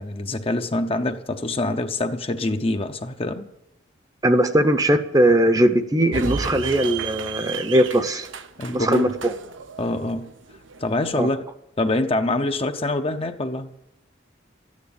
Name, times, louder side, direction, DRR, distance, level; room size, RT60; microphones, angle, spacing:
voice 1, 0.0-3.5 8.6-9.1 9.8-10.3 10.8-11.4 11.8-13.7, left 2 dB, 30° left, 0.7 m, -25 dB
voice 2, 4.2-8.3 8.7-9.3 11.1-11.3, right 1 dB, 20° right, 0.8 m, -19 dB
sound 1, 6.1-11.2, right 4 dB, 90° right, 1.0 m, -33 dB
13.5 x 9.6 x 8.7 m
head